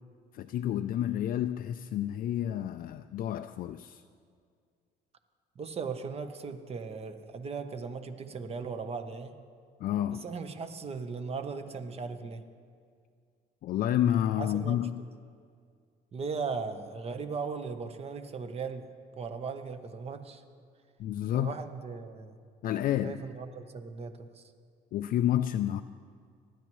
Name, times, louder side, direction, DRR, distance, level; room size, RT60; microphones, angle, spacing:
voice 1, 0.3-4.0 9.8-10.3 13.6-15.0 21.0-21.5 22.6-23.2 24.9-25.8, left 11 dB, 55° left, 0.4 m, -29 dB
voice 2, 5.6-9.3 10.1-12.4 14.4-14.9 16.1-18.9 19.2-20.4 21.3-22.4 23.0-24.4, right 5 dB, 35° right, 1.0 m, -38 dB
19.5 x 12.0 x 3.1 m
cardioid pair, 110°, 17 cm